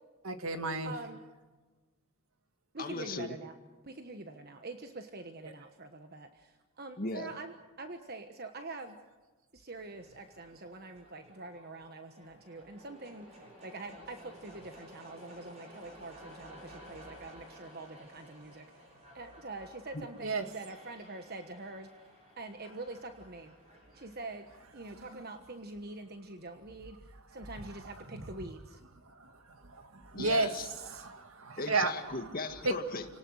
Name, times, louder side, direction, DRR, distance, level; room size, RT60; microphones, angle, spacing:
voice 1, 0.2-0.9 20.2-20.4 28.1-28.2 29.2-30.5 30.8-31.9 32.7-32.8, right 3 dB, 75° right, 7 dB, 2.1 m, -32 dB
voice 2, 0.8-1.2 2.7-3.5 3.8-9.0 9.5-18.9 19.1-21.9 22.4-23.5 23.9-24.4 24.7-27.0 27.3-28.8, right 2 dB, 45° right, 6 dB, 1.3 m, -45 dB
voice 3, 2.8-3.4 7.0-7.3 19.9-20.1 30.1-30.7 31.6-33.1, left 3 dB, 40° left, 7 dB, 1.9 m, -37 dB
sound 1, 9.7-25.7, equal, 30° right, 7.1 m, -55 dB
30.0 x 18.5 x 6.5 m, 1.3 s
head